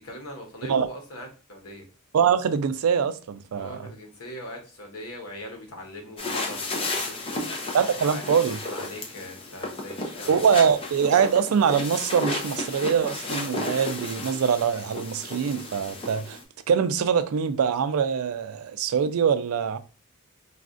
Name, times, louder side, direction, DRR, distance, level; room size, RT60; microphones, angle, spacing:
voice 1, 0.0-1.9 3.5-7.5 8.0-10.5, left 1 dB, 90° left, 1.0 m, -41 dB
voice 2, 2.1-3.9 7.7-8.6 10.3-16.4 16.7-19.8, right 7 dB, 80° right, 0.4 m, -23 dB
sound 1, 6.2-16.4, left 2 dB, 25° left, 0.5 m, -33 dB
4.0 x 2.3 x 2.5 m
head